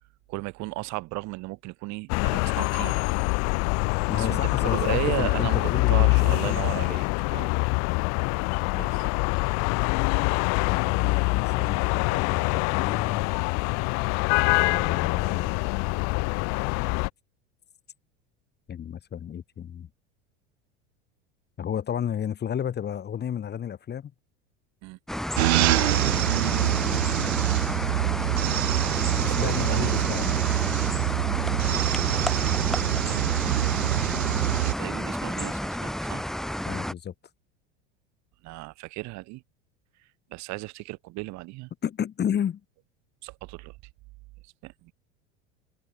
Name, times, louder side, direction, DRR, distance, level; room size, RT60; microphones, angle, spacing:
voice 1, 0.3-3.0 4.1-7.5 8.7-9.1 24.8-25.0 29.3-30.1 33.1-34.2 34.6-36.3 38.4-39.4 40.3-41.7 43.2-43.7 44.6-44.9, right 22 dB, 60° right, 5.3 m, -35 dB
sound 1, 2.1-17.1, left 32 dB, 55° left, 0.6 m, -25 dB
voice 2, 4.1-6.7 10.7-13.2 14.5-15.5 18.7-19.9 21.6-24.1 26.4-27.3 29.2-30.4 36.6-37.1 41.8-42.6, left 9 dB, 30° left, 2.0 m, -32 dB
sound 2, 25.1-36.9, equal, ahead, 1.7 m, -31 dB
sound 3, 25.4-34.7, right 17 dB, 80° right, 0.8 m, -25 dB
hypercardioid pair, 95°, 32 cm